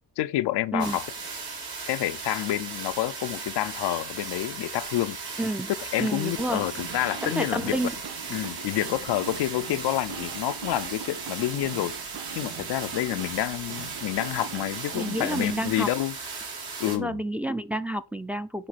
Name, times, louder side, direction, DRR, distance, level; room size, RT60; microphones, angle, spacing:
voice 1, 0.2-1.1 1.8-5.2 5.9-7.8 8.3-11.9 12.3-16.1 16.8-17.2, left 14 dB, 85° left, 0.5 m, -28 dB
sound 1, 0.8-17.0, right 4 dB, 70° right, 2.3 m, -37 dB
voice 2, 5.4-5.7 6.0-6.7 7.2-7.9 14.9-15.9 16.9-18.7, right 1 dB, 5° right, 0.4 m, -29 dB
sound 2, 6.0-15.8, right 9 dB, 85° right, 0.7 m, -42 dB
7.7 x 3.2 x 5.6 m
cardioid pair, 80°, 39 cm